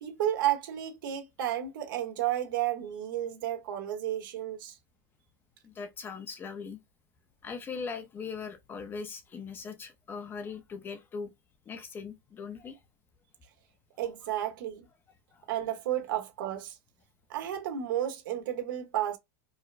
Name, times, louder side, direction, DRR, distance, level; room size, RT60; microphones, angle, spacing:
voice 1, 0.0-4.7 14.0-14.8 15.5-16.7 17.3-19.2, right 12 dB, 75° right, 1.2 m, -32 dB
voice 2, 5.6-6.8 7.4-11.3 11.7-12.8 15.3-15.4, left 5 dB, 20° left, 0.5 m, -40 dB
4.7 x 2.1 x 2.5 m
supercardioid pair, 145°, 11 cm